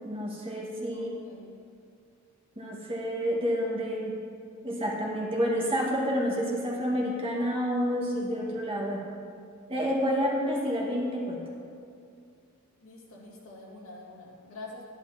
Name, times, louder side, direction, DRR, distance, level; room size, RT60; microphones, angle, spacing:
voice 1, 0.0-1.1 2.6-4.1 4.6-9.0 9.7-11.5, equal, 25° right, -3 dB, 1.6 m, -29 dB
voice 2, 0.9-1.5 12.8-14.9, left 2 dB, 90° left, -4 dB, 2.2 m, -46 dB
11.5 x 10.5 x 2.9 m, 2.3 s
head